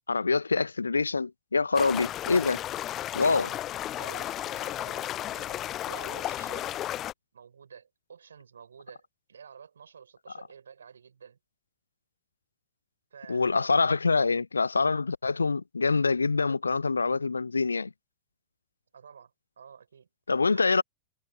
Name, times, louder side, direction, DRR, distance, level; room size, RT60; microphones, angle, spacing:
voice 1, 0.1-2.6 3.1-3.6 13.3-17.9 20.3-20.8, left 4 dB, 80° left, 0.8 m, -25 dB
sound 1, 1.7-7.1, left 12 dB, 30° left, 0.5 m, -34 dB
voice 2, 3.9-6.7 7.3-11.4 13.1-13.8 18.9-20.8, right 7 dB, 70° right, 5.5 m, -50 dB
figure-of-eight pair, 90°, 0 cm